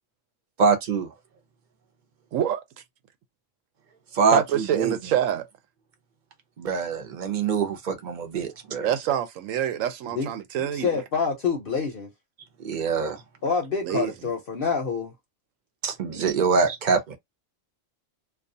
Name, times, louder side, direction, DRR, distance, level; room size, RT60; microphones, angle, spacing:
voice 1, 0.6-1.1 4.1-4.9 6.6-8.9 12.6-13.2 15.8-17.2, right 5 dB, 50° right, 0.6 m, -24 dB
voice 2, 4.3-5.5 8.8-11.0 13.8-14.1, right 10 dB, 80° right, 1.0 m, -26 dB
voice 3, 10.6-12.1 13.4-15.1, left 5 dB, 55° left, 0.7 m, -27 dB
2.3 x 2.3 x 2.6 m
omnidirectional pair, 1.4 m